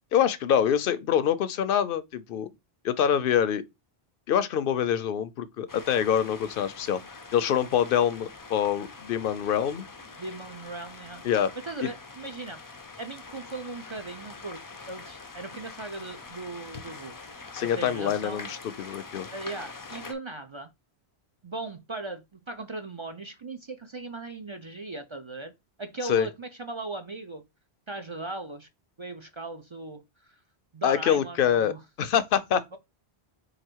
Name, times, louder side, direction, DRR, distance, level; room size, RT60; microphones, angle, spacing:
voice 1, 0.1-2.5 2.8-3.6 4.3-7.0 7.3-9.9 11.2-11.5 11.8-11.9 17.5-19.3 26.0-26.3 30.8-32.8, left 9 dB, 65° left, 0.7 m, -25 dB
sound 1, 5.7-20.1, left 4 dB, 35° left, 0.3 m, -44 dB
voice 2, 10.2-11.2 11.5-12.6 13.0-18.5 19.3-20.7 21.4-25.5 25.8-27.4 27.9-28.7 29.0-30.3 30.7-31.8, right 2 dB, 40° right, 0.4 m, -38 dB
4.8 x 2.5 x 4.5 m
omnidirectional pair, 1.1 m